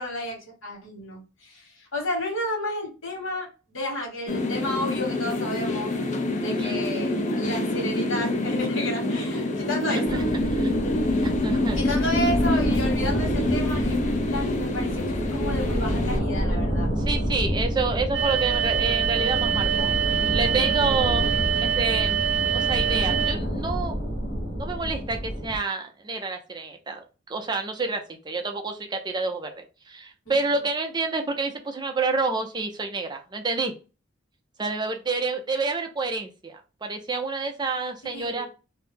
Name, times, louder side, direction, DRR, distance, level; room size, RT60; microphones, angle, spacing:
voice 1, 0.0-6.0 6.3-10.2 11.8-16.9 30.2-30.4 38.1-38.5, left 1 dB, 85° left, 0 dB, 1.4 m, -32 dB
sound 1, 4.3-16.2, left 1 dB, 40° left, 0.4 m, -26 dB
voice 2, 6.5-6.8 9.9-10.2 10.5-10.7 11.2-11.8 17.0-22.2 22.5-24.0 24.6-33.7 34.6-38.5, right 3 dB, 20° right, 4 dB, 0.4 m, -29 dB
sound 2, 10.0-25.6, equal, 70° left, 1.0 m, -28 dB
sound 3, 18.1-23.3, right 9 dB, 60° right, 0.7 m, -25 dB
2.7 x 2.0 x 3.4 m, 0.32 s
head